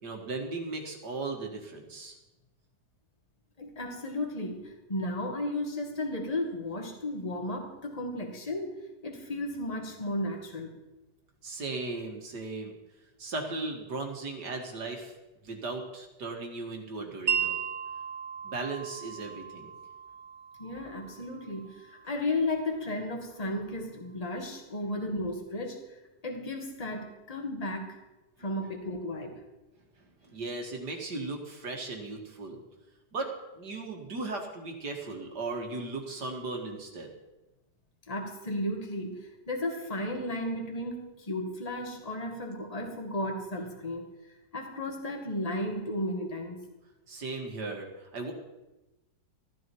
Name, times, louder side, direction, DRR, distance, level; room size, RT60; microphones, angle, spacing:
voice 1, 0.0-2.2 11.4-12.8 13.2-15.1 15.4-17.5 18.4-19.7 30.0-32.6 33.1-37.1 47.1-48.3, right 3 dB, 65° right, 2 dB, 2.5 m, -37 dB
voice 2, 3.6-10.7 20.6-25.9 26.2-28.0 28.4-29.4 38.1-44.1 44.5-46.6, left 1 dB, 20° left, 2 dB, 1.9 m, -34 dB
Wind chime, 17.3-23.4, right 8 dB, 45° right, 0.6 m, -37 dB
14.5 x 13.0 x 4.7 m, 1.0 s
omnidirectional pair, 1.9 m